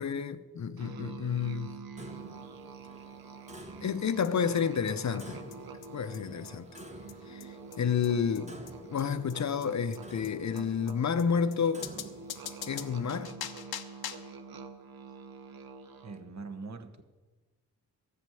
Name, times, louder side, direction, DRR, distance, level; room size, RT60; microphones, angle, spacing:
voice 1, 0.0-1.9 3.8-5.4 5.9-6.7 7.3-8.6 8.9-11.9 12.7-13.4, left 6 dB, 50° left, 0.7 m, -30 dB
Musical instrument, 0.8-16.3, right 4 dB, 75° right, 1.0 m, -47 dB
Clock, 2.0-13.3, right 1 dB, 20° right, 1.4 m, -51 dB
sound 1, 4.2-4.3 4.6-4.7 4.9-5.0 5.2-5.3 5.5-5.6 5.8-5.9 6.1-6.2 6.5-6.6 6.8-6.9 7.1-7.2 7.4-7.5 7.7-7.8 8.0-8.1 8.3-8.4 8.7-8.8 9.0-9.1 9.3-9.4 9.6-9.7 9.9-10.0 10.2-10.3 10.6-10.7 10.9-11.0 11.2-11.3 11.5-11.6 11.8-14.4, left 10 dB, 85° left, 0.8 m, -42 dB
voice 2, 16.0-17.0, right 4 dB, 45° right, 1.1 m, -42 dB
13.5 x 6.6 x 9.1 m
cardioid pair, 75°, 36 cm